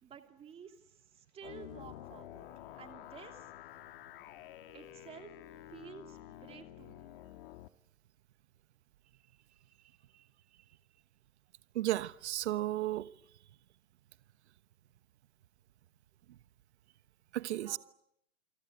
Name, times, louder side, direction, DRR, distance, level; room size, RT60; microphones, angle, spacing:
voice 1, 0.0-3.5 4.7-5.3 5.7-7.2 17.6-17.8, right 7 dB, 15° right, 2.8 m, -52 dB
sound 1, 1.4-7.7, left 13 dB, 40° left, 1.7 m, -50 dB
voice 2, 11.7-13.1 17.3-17.8, right 14 dB, 50° right, 1.2 m, -33 dB
28.5 x 24.0 x 8.0 m
hypercardioid pair, 150°, 42 cm